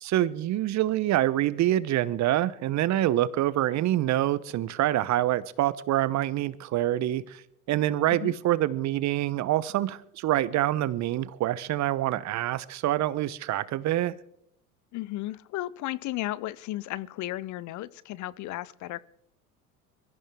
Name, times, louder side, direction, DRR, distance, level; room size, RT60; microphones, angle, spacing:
voice 1, 0.0-7.4 7.7-14.1, right 14 dB, 40° right, 0.8 m, -26 dB
voice 2, 14.9-19.1, left 16 dB, 40° left, 0.7 m, -34 dB
22.5 x 14.0 x 3.6 m
hypercardioid pair, 80°, 44 cm